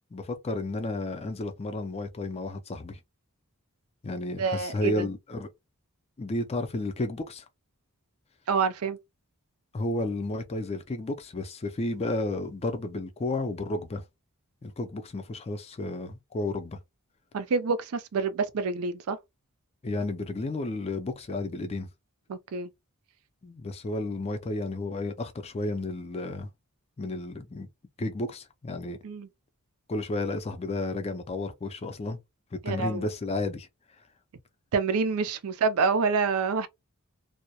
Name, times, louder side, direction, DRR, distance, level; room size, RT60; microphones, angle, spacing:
voice 1, 0.1-3.0 4.0-5.5 6.2-7.4 9.7-14.0 14.6-16.8 19.8-21.9 23.4-26.5 27.0-27.7 28.0-29.0 29.9-32.2 32.5-33.7, left 2 dB, 30° left, 0.4 m, -32 dB
voice 2, 4.4-5.1 8.5-9.0 17.3-19.2 22.3-22.7 29.0-29.3 32.6-33.0 34.7-36.7, right 5 dB, 70° right, 0.4 m, -27 dB
2.2 x 2.0 x 2.7 m
head